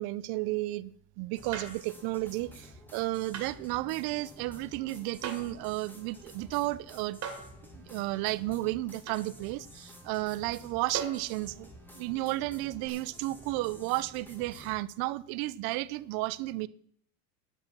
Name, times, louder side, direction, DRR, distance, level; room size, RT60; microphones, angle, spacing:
voice 1, 0.0-7.2 7.7-11.7 11.9-16.7, right 18 dB, 60° right, 0.6 m, -33 dB
sound 1, 1.4-14.8, equal, 5° left, 2.0 m, -51 dB
sound 2, 1.5-1.9 3.3-3.5 5.2-5.6 7.2-7.6 9.1-9.3 10.9-11.3 12.8-12.9, right 6 dB, 35° right, 2.4 m, -38 dB
10.0 x 7.4 x 7.4 m
supercardioid pair, 135°, 41 cm